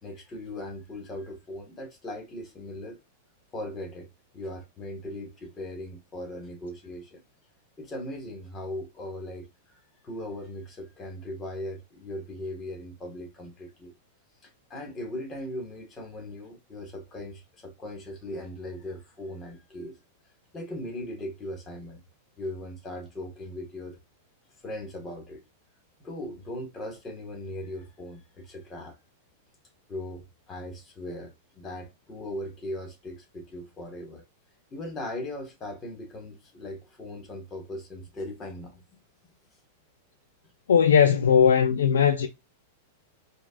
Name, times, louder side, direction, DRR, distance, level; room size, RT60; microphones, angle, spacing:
voice 1, 0.0-3.0 3.5-7.2 7.8-9.5 10.0-13.9 14.4-20.0 20.5-22.0 22.4-24.0 24.6-25.4 26.0-29.0 29.9-34.2 34.7-39.0, left 1 dB, 25° left, 1.6 m, -39 dB
voice 2, 40.7-42.3, left 7 dB, 75° left, 0.4 m, -19 dB
4.9 x 2.3 x 2.5 m
hypercardioid pair, 100°, 0 cm